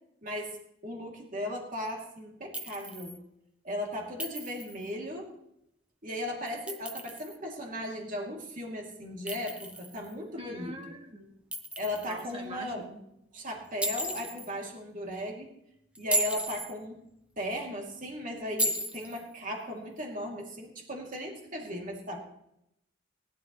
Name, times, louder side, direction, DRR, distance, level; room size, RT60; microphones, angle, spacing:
voice 1, 0.2-0.6 0.8-3.2 3.6-5.3 6.0-10.8 11.8-12.8 13.3-15.5 16.0-17.0 17.4-22.2, left 1 dB, 45° right, 0 dB, 2.8 m, -37 dB
Chink clink, 2.5-3.2 4.2-4.8 6.5-7.4 9.3-10.1 11.5-12.2 13.8-14.5 15.9-16.7 18.6-19.2, right 1 dB, 5° right, 1.0 m, -34 dB
voice 2, 10.4-11.3 12.0-13.0, right 1 dB, 30° right, 2 dB, 2.1 m, -43 dB
19.5 x 11.5 x 3.2 m, 0.80 s
head